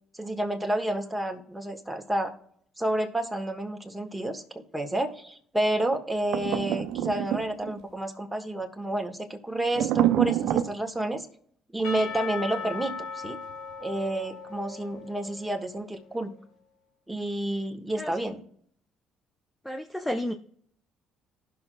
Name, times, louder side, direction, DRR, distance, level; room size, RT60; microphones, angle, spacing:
voice 1, 0.1-2.3 2.8-11.3 11.7-13.4 13.8-16.3 17.1-18.4, right 1 dB, 5° right, 4 dB, 1.5 m, -30 dB
sound 1, 6.3-7.8 9.7-10.7, right 12 dB, 70° right, 0.5 m, -26 dB
Percussion / Church bell, 11.8-15.8, left 5 dB, 70° left, 2.2 m, -38 dB
voice 2, 19.6-20.3, left 1 dB, 10° left, 5 dB, 0.7 m, -31 dB
18.5 x 6.2 x 2.3 m, 0.65 s
hypercardioid pair, 60°, 0 cm